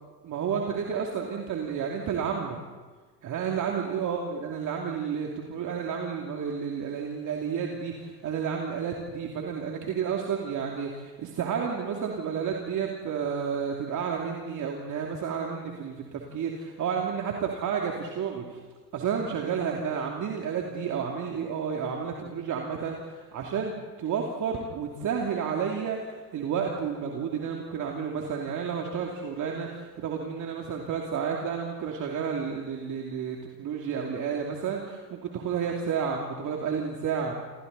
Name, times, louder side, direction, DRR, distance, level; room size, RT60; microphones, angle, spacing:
voice 1, 0.2-2.6 3.2-18.6 18.9-37.3, right 6 dB, 35° right, 0 dB, 2.9 m, -31 dB
29.5 x 27.0 x 4.2 m, 1.4 s
figure-of-eight pair, 80°, 50 cm